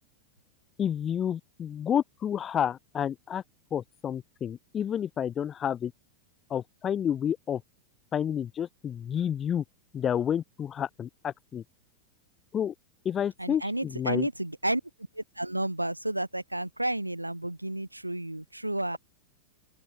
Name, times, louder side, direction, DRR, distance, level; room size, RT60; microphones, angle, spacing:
voice 1, 0.8-3.4 3.7-5.9 6.5-7.6 8.1-9.6 9.9-11.6 12.5-12.7 13.0-14.3, left 9 dB, 25° left, 1.5 m, -30 dB
voice 2, 13.4-14.8 15.1-19.0, right 1 dB, 85° right, 3.6 m, -31 dB
open air
figure-of-eight pair, 90°, 0 cm